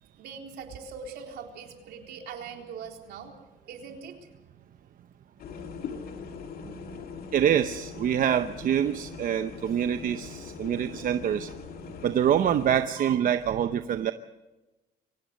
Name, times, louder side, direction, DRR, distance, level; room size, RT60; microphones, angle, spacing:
voice 1, 0.1-3.3 3.7-4.2, right 6 dB, 75° right, 2 dB, 3.9 m, -41 dB
sound 1, 5.4-12.9, left 5 dB, 60° left, 2.5 m, -41 dB
voice 2, 7.3-11.5 12.0-14.1, right 9 dB, 55° right, 10 dB, 0.8 m, -25 dB
24.5 x 17.5 x 6.5 m, 1.1 s
cardioid pair, 110°, 17 cm